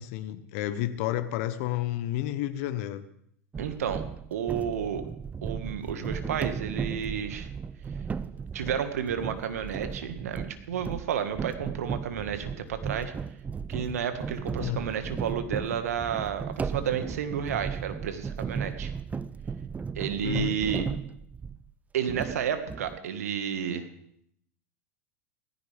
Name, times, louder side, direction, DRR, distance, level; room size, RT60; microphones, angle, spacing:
voice 1, 0.0-3.0 14.6-14.8 20.2-20.6, left 13 dB, 60° left, 11 dB, 1.0 m, -31 dB
sound 1, 3.5-21.7 22.1-23.0, right 6 dB, 20° right, 0.4 m, -36 dB
voice 2, 3.6-4.0 4.3-5.0 5.4-7.5 8.5-13.1 13.7-18.9 19.9-20.9 21.9-23.9, right 8 dB, 80° right, 8 dB, 1.7 m, -31 dB
17.5 x 15.0 x 3.5 m, 0.69 s
hypercardioid pair, 95°, 8 cm